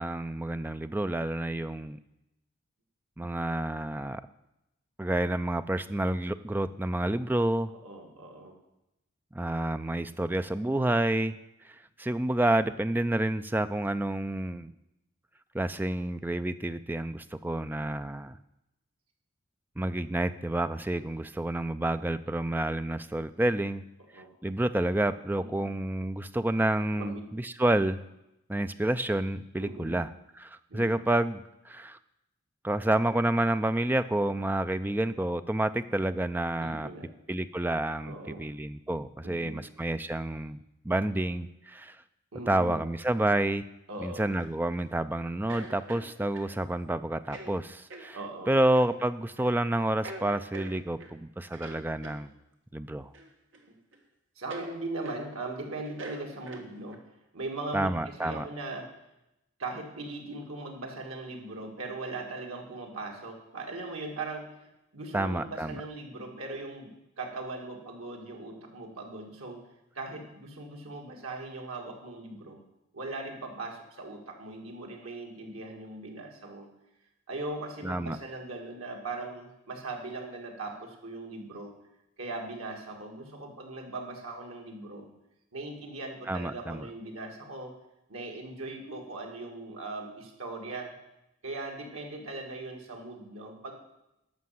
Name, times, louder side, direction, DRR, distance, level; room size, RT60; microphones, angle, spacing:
voice 1, 0.0-2.0 3.2-4.2 5.0-7.7 9.3-11.4 11.6-14.7 15.5-18.4 19.8-23.9 24.1-28.0 28.5-32.0 32.6-36.9 37.3-40.6 40.8-42.0 42.5-43.7 44.0-48.2 48.5-52.3 52.7-53.1 57.7-58.4 65.1-65.8 77.8-78.2 86.3-86.9, right 1 dB, 10° right, 11 dB, 0.3 m, -29 dB
voice 2, 7.8-8.6 24.1-24.3 25.3-25.7 26.9-27.2 29.6-30.0 30.7-31.0 36.6-37.1 38.0-38.5 39.2-39.6 42.3-42.8 43.9-44.3 48.1-48.5 54.4-57.0 57.3-58.9 59.6-64.5 64.9-69.6 69.9-72.6 72.9-76.7 77.3-81.7 82.2-85.1 85.5-87.7 88.1-90.9 91.4-93.7, right 2 dB, 85° right, 1 dB, 2.2 m, -39 dB
sound 1, 44.3-44.9 45.5-46.5 47.2-47.5 47.9-48.1 48.7-48.9 49.4-49.6 50.0-51.1 51.5-52.2 53.1-53.7 53.9-54.0 54.5-54.7 55.0-55.2 55.8-57.0, right 2 dB, 60° right, 1.6 m, -44 dB
11.5 x 6.3 x 7.7 m, 0.89 s
head